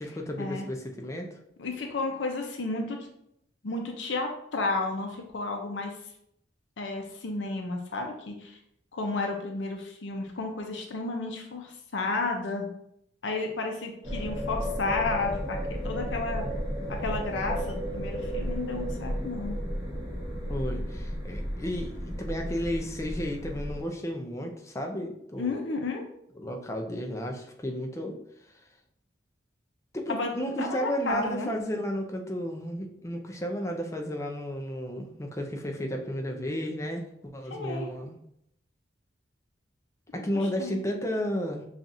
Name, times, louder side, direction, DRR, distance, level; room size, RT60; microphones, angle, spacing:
voice 1, 0.0-1.4 20.5-25.6 26.3-28.2 29.9-38.2 40.1-41.7, equal, 15° left, 2 dB, 0.4 m, -33 dB
voice 2, 1.6-3.0 3.6-5.9 6.8-8.6 8.9-12.7 13.2-15.6 15.8-16.5 16.9-19.6 25.4-26.0 30.1-30.3 30.6-31.5 37.5-37.9 40.6-40.8, left 3 dB, 75° left, 2 dB, 0.6 m, -32 dB
sound 1, 14.0-23.8, equal, 15° right, 1.1 m, -33 dB
5.5 x 2.4 x 2.6 m, 0.75 s
head